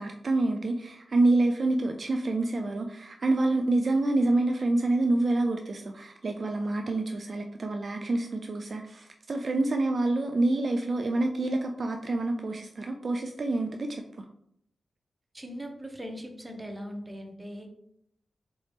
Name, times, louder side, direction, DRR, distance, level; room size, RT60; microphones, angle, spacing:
voice 1, 0.0-14.0, right 2 dB, 55° right, 4 dB, 0.3 m, -27 dB
voice 2, 15.3-17.7, equal, 15° right, 3 dB, 0.8 m, -40 dB
4.2 x 3.0 x 3.3 m, 0.72 s
cardioid pair, 60°, 0 cm